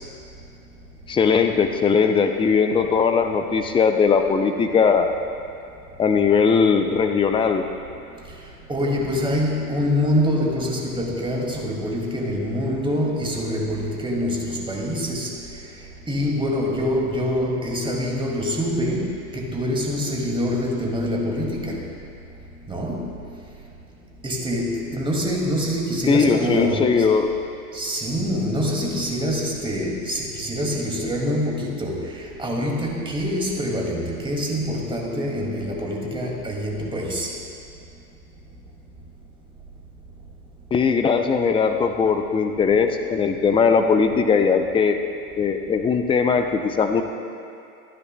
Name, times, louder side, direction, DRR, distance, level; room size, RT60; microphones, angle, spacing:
voice 1, 1.1-5.1 6.0-7.6 26.1-27.3 40.7-45.0 45.4-47.0, left 5 dB, 10° left, 6 dB, 0.6 m, -19 dB
voice 2, 8.7-15.4 16.1-21.9 22.7-23.1 24.2-27.1 27.7-37.3, equal, 10° right, -2 dB, 2.6 m, -25 dB
25.5 x 10.0 x 2.3 m, 2.6 s
figure-of-eight pair, 90°, 45 cm